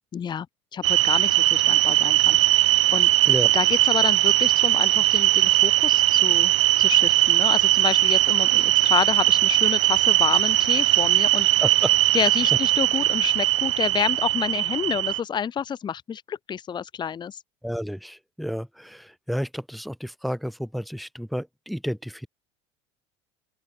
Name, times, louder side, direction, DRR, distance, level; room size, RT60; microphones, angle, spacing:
voice 1, 0.1-0.5 0.7-3.1 3.5-6.5 6.8-11.6 12.1-17.4, left 8 dB, 30° left, 0.8 m, -29 dB
sound 1, 0.8-15.2, right 15 dB, 90° right, 0.5 m, -20 dB
voice 2, 11.6-12.3 17.6-22.3, equal, ahead, 3.8 m, -31 dB
open air
hypercardioid pair, 80°, 15 cm